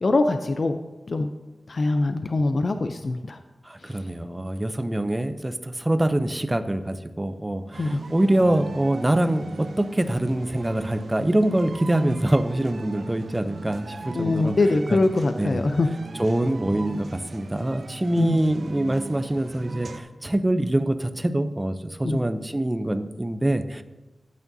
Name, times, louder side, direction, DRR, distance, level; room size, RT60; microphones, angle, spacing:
voice 1, 0.0-0.8 1.1-1.3 1.7-3.4 7.8-8.0 14.2-15.9 18.2-18.4 22.0-22.2, left 2 dB, 55° left, 7 dB, 0.5 m, -23 dB
voice 2, 3.6-14.6 14.9-15.0 15.4-15.6 16.2-23.8, right 1 dB, 15° right, 10 dB, 0.5 m, -24 dB
sound 1, 7.7-20.0, right 3 dB, 70° right, 0.6 m, -38 dB
12.5 x 8.5 x 2.7 m, 1.1 s
wide cardioid pair, 90°, 0 cm